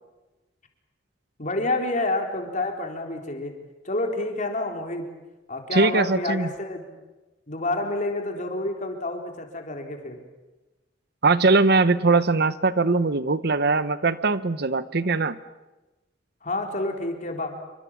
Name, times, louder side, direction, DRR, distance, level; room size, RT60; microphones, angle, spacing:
voice 1, 1.4-3.5 3.8-5.1 5.5-6.9 7.5-10.2 16.4-17.5, left 2 dB, 45° left, 3 dB, 3.8 m, -28 dB
voice 2, 5.7-6.5 11.2-15.4, right 3 dB, 60° right, 14 dB, 0.9 m, -21 dB
27.5 x 24.5 x 7.4 m, 1.1 s
head